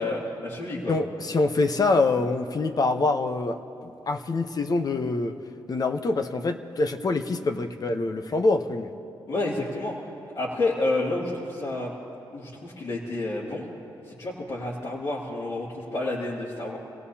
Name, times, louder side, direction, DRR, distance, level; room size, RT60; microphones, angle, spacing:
voice 1, 0.0-1.0 9.3-9.9 10.3-11.9 12.3-13.7 14.1-16.8, left 2 dB, 65° left, -8 dB, 2.7 m, -29 dB
voice 2, 0.9-5.4 5.7-8.9, left 3 dB, 45° left, 7 dB, 0.9 m, -25 dB
27.0 x 16.5 x 2.9 m, 2.8 s
cardioid pair, 70°, 9 cm